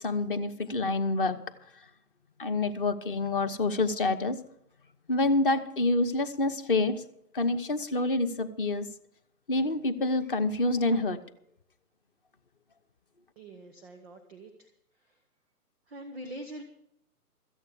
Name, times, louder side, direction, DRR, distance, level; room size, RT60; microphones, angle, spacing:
voice 1, 0.0-1.4 2.4-4.4 5.1-7.0 7.3-8.9 9.5-11.2, left 2 dB, 35° left, 11 dB, 1.0 m, -27 dB
voice 2, 13.4-14.7 15.0-15.2 15.9-16.6, right 1 dB, ahead, 7 dB, 0.6 m, -44 dB
13.5 x 8.6 x 8.5 m, 0.76 s
hypercardioid pair, 155°, 47 cm